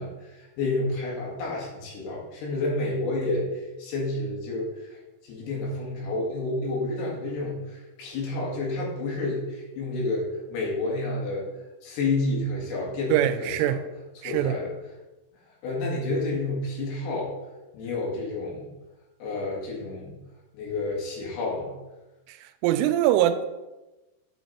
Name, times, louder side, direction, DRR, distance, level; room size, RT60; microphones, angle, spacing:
voice 1, 0.0-5.0 5.2-11.5 11.8-13.8 14.2-14.7 15.6-17.3 17.7-18.7 19.2-20.1 20.5-21.7, left 2 dB, 65° left, -3 dB, 3.8 m, -30 dB
voice 2, 13.1-13.8 14.2-14.6 22.3-23.5, right 12 dB, 90° right, 10 dB, 3.1 m, -23 dB
8.6 x 6.1 x 4.1 m, 1.1 s
omnidirectional pair, 5.6 m